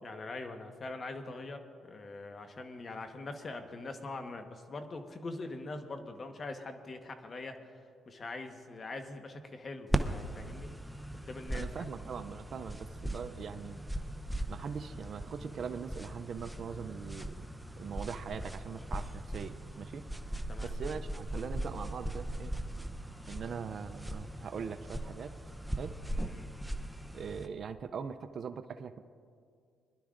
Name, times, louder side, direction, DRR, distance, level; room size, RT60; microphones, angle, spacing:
voice 1, 0.0-10.7 11.1-11.9 20.5-20.7 26.3-26.5, left 2 dB, 40° left, 6 dB, 1.2 m, -43 dB
sound 1, 9.9-27.5, right 1 dB, ahead, 0.7 m, -39 dB
voice 2, 11.5-13.8 14.5-17.5 17.8-20.0 20.6-22.5 23.3-25.3 25.8-26.0 27.1-29.0, right 6 dB, 55° right, 8 dB, 0.4 m, -41 dB
23.5 x 11.5 x 2.5 m, 2.3 s
cardioid pair, 90°, 0 cm